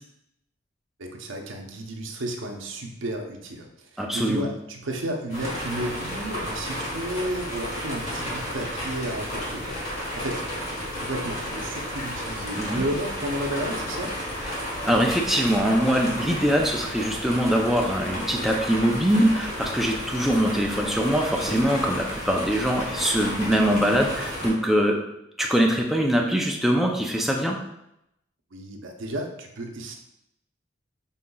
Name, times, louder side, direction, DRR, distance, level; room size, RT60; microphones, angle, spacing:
voice 1, 1.0-10.4 11.0-14.1 28.5-29.9, right 1 dB, 80° right, 2 dB, 0.7 m, -32 dB
voice 2, 4.0-4.5 12.5-12.8 14.4-14.6 14.8-25.0 25.4-27.6, equal, ahead, 0 dB, 0.4 m, -23 dB
sound 1, 5.3-24.5, equal, 35° left, 1.4 m, -32 dB
5.5 x 3.7 x 2.3 m, 0.83 s
head